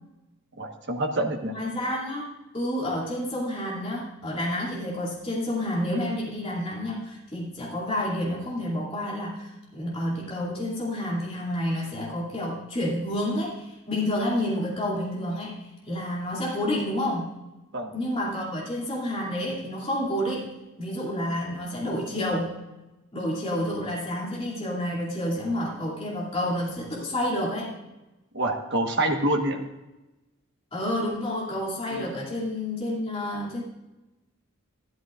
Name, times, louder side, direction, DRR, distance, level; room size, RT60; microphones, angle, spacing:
voice 1, 0.6-1.5 17.7-17.9 28.3-29.6 31.9-32.1, right 1 dB, 55° right, 3 dB, 1.3 m, -26 dB
voice 2, 1.5-2.3 2.5-15.5 15.9-17.4 17.9-20.5 20.8-22.6 23.1-27.7 30.7-33.6, left 1 dB, 25° left, -6 dB, 2.6 m, -29 dB
13.5 x 13.0 x 2.5 m, 1.0 s
head